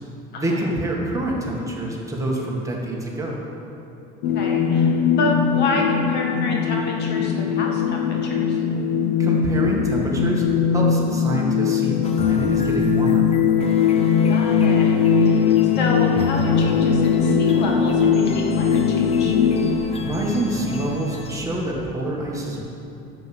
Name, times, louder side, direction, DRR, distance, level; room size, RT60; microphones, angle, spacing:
voice 1, 0.4-3.4 9.2-10.4 10.7-13.3 20.0-22.7, right 1 dB, 15° right, -3 dB, 1.9 m, -26 dB
sound 1, 4.2-19.8, left 7 dB, 85° left, 0.7 m, -20 dB
voice 2, 4.3-8.6 14.3-15.4 15.8-19.3, left 2 dB, 60° left, 0 dB, 1.8 m, -29 dB
sound 2, 12.0-21.4, left 2 dB, 30° left, 0.9 m, -33 dB
10.5 x 7.8 x 6.2 m, 2.8 s
cardioid pair, 120°, 20 cm